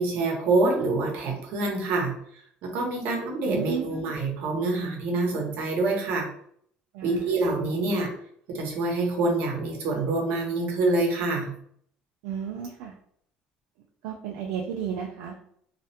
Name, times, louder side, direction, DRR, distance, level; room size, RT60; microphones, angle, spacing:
voice 1, 0.0-2.1 2.6-6.3 7.0-8.1 8.5-11.5, right 2 dB, 70° right, 0 dB, 0.8 m, -26 dB
voice 2, 3.5-4.1 6.9-7.3 12.2-12.9 14.0-15.3, right 8 dB, 90° right, 1 dB, 0.3 m, -33 dB
2.3 x 2.1 x 2.7 m, 0.65 s
cardioid pair, 125°, 3 cm